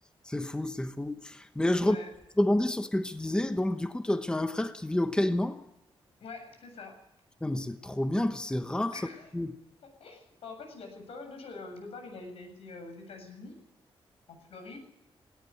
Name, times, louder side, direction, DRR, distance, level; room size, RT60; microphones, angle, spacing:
voice 1, 0.3-2.0 2.4-5.6 7.4-8.9 9.3-9.5, left 1 dB, 10° left, 1.1 m, -29 dB
voice 2, 6.2-7.0 8.9-9.3 9.8-13.6 14.3-14.8, left 3 dB, 85° left, 7.8 m, -45 dB
18.0 x 17.5 x 8.6 m
wide cardioid pair, 130°, 10 cm